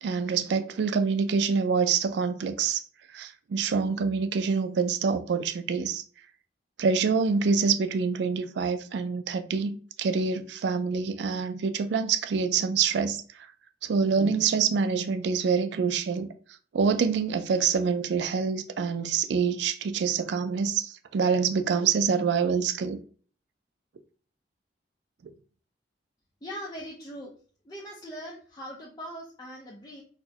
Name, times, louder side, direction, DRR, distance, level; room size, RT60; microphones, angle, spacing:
voice 1, 0.0-2.8 3.1-6.0 6.8-13.2 13.8-16.3 16.7-23.0, right 5 dB, 75° right, 0.3 m, -26 dB
voice 2, 26.4-27.3 27.6-30.0, equal, 20° left, 0.5 m, -40 dB
4.1 x 2.1 x 2.7 m
head